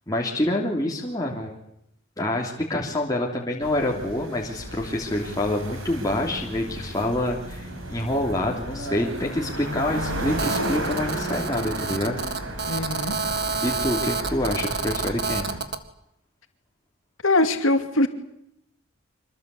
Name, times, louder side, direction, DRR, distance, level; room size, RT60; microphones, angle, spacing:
voice 1, 0.1-1.5 2.2-12.2 13.6-15.5, left 1 dB, 15° left, -2 dB, 3.2 m, -27 dB
sound 1, 3.6-15.6, right 1 dB, 80° right, 6.1 m, -33 dB
Telephone, 10.4-15.8, right 4 dB, 50° right, 2.0 m, -29 dB
voice 2, 12.7-13.2 17.2-18.1, left 2 dB, 80° left, 7 dB, 2.7 m, -22 dB
26.0 x 20.0 x 8.4 m, 0.76 s
head